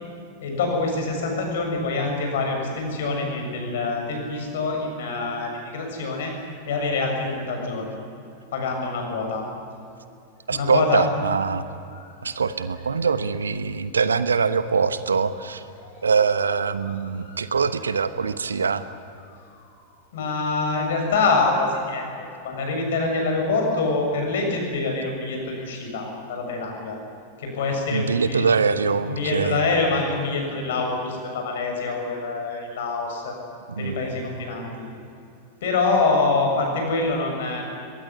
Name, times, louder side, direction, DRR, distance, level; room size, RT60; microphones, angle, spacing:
voice 1, 0.4-6.3 6.7-7.9 8.5-9.4 10.5-11.0 12.0-12.1 15.8-16.0 17.2-17.5 19.5-19.7 20.1-27.0 27.4-28.4 29.0-33.3 33.8-34.8 35.6-37.7, left 3 dB, 60° left, 2 dB, 7.1 m, -25 dB
voice 2, 10.5-11.6 12.2-15.6 16.0-18.8 27.9-29.6 33.7-34.0, right 5 dB, 70° right, 13 dB, 1.1 m, -23 dB
22.5 x 20.0 x 9.9 m, 2.6 s
figure-of-eight pair, 90°, 0 cm